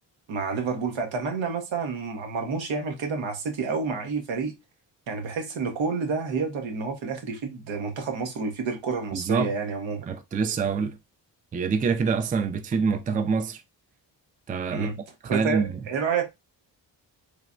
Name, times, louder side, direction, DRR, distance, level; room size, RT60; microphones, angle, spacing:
voice 1, 0.3-4.5 5.1-10.1 14.7-15.0 15.2-16.3, right 4 dB, 80° right, 0.8 m, -29 dB
voice 2, 9.1-9.5 10.1-11.0 11.5-13.6 14.5-14.9 15.2-15.8, right 5 dB, 20° right, 0.3 m, -25 dB
3.1 x 2.1 x 2.4 m
supercardioid pair, 55°, 45 cm